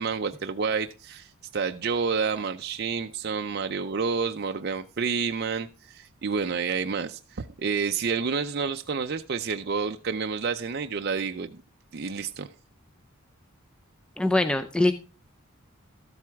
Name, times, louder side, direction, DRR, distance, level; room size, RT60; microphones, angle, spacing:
voice 1, 0.0-11.6 11.9-12.5, right 5 dB, 45° right, 6 dB, 0.5 m, -29 dB
voice 2, 14.2-14.9, left 2 dB, 5° left, 7 dB, 0.4 m, -22 dB
13.5 x 7.6 x 3.5 m, 0.33 s
head